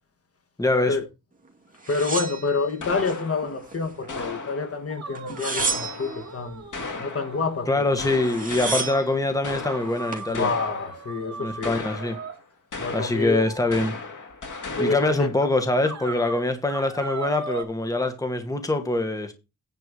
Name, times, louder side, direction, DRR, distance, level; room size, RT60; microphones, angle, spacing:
voice 1, 0.6-1.0 7.7-10.5 11.3-12.2 12.9-13.9 14.8-19.3, left 2 dB, 10° left, 1.3 m, -24 dB
sound 1, 1.8-3.2 3.6-4.4 5.2-6.2 7.8-7.9 8.1-9.1 9.8-10.3, right 4 dB, 25° right, 2.4 m, -31 dB
voice 2, 1.9-6.6 7.0-8.0 10.3-11.8 12.8-13.5 14.8-15.3, left 4 dB, 45° left, 1.5 m, -28 dB
sound 2, 2.8-4.9 5.6-7.5 8.0-11.2 11.6-12.4 12.7-15.4, left 4 dB, 70° left, 2.3 m, -36 dB
sound 3, 4.9-7.9 8.3-8.4 8.9-9.0 9.6-12.4 13.4-13.9 14.7-14.8 15.4-15.5 15.8-17.6, right 5 dB, 55° right, 2.4 m, -38 dB
9.7 x 4.4 x 6.9 m
wide cardioid pair, 170°, 32 cm